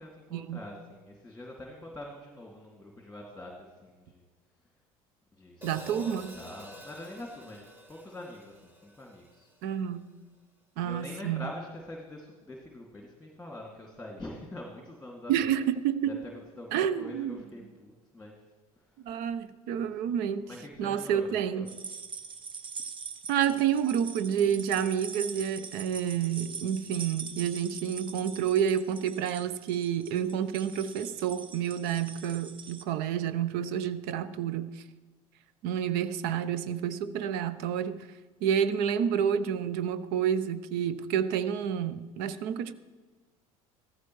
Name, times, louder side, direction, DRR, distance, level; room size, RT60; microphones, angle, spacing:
voice 1, 0.0-4.3 5.3-9.5 10.8-15.6 16.1-18.4 18.8-19.0 19.7-21.7, left 1 dB, 5° left, 2.3 m, -45 dB
Hi-hat, 5.6-9.9, left 1 dB, 10° right, 2.1 m, -50 dB
voice 2, 5.6-6.3 9.6-10.1 10.8-11.5 15.3-16.1 16.7-17.4 19.0-20.5 20.8-21.7 23.3-34.8 35.6-38.1 38.4-42.7, right 9 dB, 55° right, 0.7 m, -29 dB
sound 1, 21.7-32.8, right 5 dB, 25° right, 0.8 m, -42 dB
15.5 x 14.5 x 3.2 m
figure-of-eight pair, 70°, 19 cm